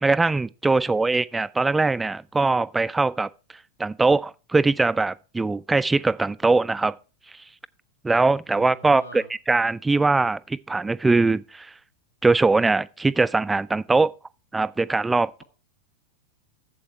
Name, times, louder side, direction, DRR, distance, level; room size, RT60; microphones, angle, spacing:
voice 1, 0.0-3.3 3.8-7.0 8.0-11.7 12.2-14.1 14.5-15.4, right 3 dB, 10° right, 0.3 m, -21 dB
voice 2, 0.6-1.0 8.5-9.3, right 1 dB, 90° left, 1.5 m, -45 dB
7.9 x 7.7 x 4.4 m
figure-of-eight pair, 90°, 0 cm